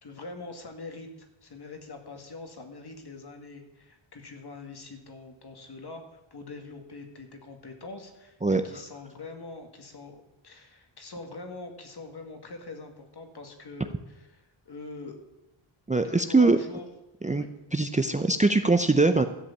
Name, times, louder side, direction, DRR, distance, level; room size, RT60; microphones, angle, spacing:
voice 1, 0.0-6.0 6.3-15.2 16.0-16.9 17.3-17.5 18.0-18.2, left 3 dB, 50° left, 4 dB, 2.2 m, -43 dB
voice 2, 15.9-16.6 17.2-17.4 17.7-19.2, right 3 dB, 15° right, 9 dB, 0.6 m, -22 dB
13.5 x 5.1 x 8.6 m, 0.98 s
cardioid pair, 80°, 49 cm